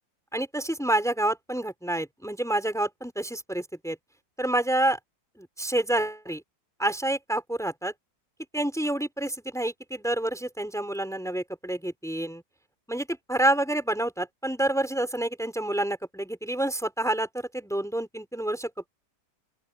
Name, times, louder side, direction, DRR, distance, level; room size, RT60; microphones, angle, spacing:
voice 1, 0.3-4.0 4.4-5.0 5.4-6.4 6.8-7.9 8.5-12.4 12.9-18.9, right 1 dB, ahead, 4.2 m, -28 dB
open air
omnidirectional pair, 1.9 m